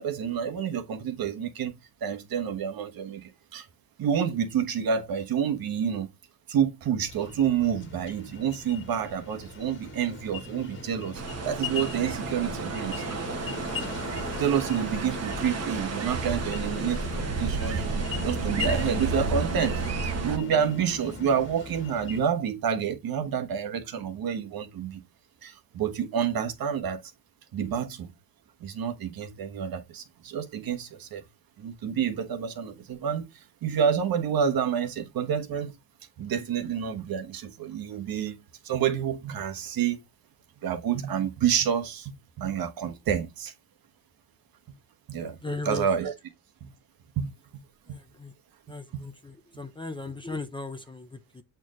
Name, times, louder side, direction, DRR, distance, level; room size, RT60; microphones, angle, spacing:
voice 1, 0.0-1.7 2.0-3.7 4.0-6.1 6.5-13.0 14.4-19.8 20.1-25.0 25.4-27.0 27.5-28.1 28.6-31.2 31.6-35.8 36.2-40.0 40.6-43.5 45.1-45.4 45.6-46.1 46.6-46.7 47.2-47.3 48.9-49.1, right 8 dB, 60° right, 1.3 m, -29 dB
sound 1, 7.1-22.2, left 5 dB, 30° left, 1.7 m, -38 dB
sound 2, 11.1-20.4, right 5 dB, 40° right, 1.0 m, -32 dB
voice 2, 45.4-45.9 47.9-48.3 48.7-51.4, left 3 dB, 10° left, 0.6 m, -37 dB
8.0 x 4.5 x 3.0 m
cardioid pair, 125°, 41 cm